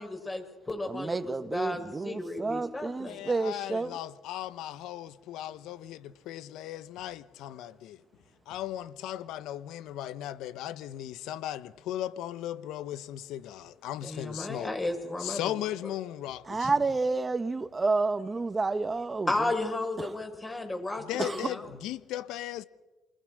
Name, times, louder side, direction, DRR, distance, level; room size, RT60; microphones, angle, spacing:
voice 1, 0.0-3.3 14.0-15.6 16.6-16.7 19.3-21.7, left 2 dB, 20° left, 7.1 m, -34 dB
voice 2, 0.9-3.9 16.5-19.3 21.2-21.4, right 3 dB, 25° right, 1.7 m, -29 dB
voice 3, 3.0-8.0 8.5-14.7 15.2-16.7 21.0-22.6, left 12 dB, 75° left, 1.1 m, -37 dB
28.0 x 23.5 x 6.6 m
supercardioid pair, 70°, 0 cm